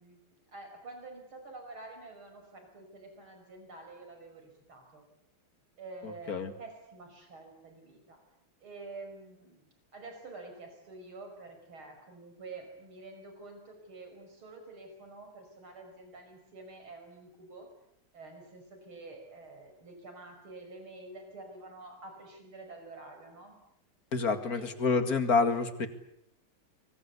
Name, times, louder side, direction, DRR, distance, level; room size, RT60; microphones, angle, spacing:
voice 1, 0.0-5.0 5.8-8.2 8.6-17.7 18.1-23.6 24.4-24.7, right 3 dB, 80° right, 5 dB, 6.4 m, -48 dB
voice 2, 24.1-25.9, left 4 dB, 45° left, 9 dB, 2.5 m, -27 dB
24.5 x 24.0 x 8.3 m, 0.74 s
omnidirectional pair, 2.3 m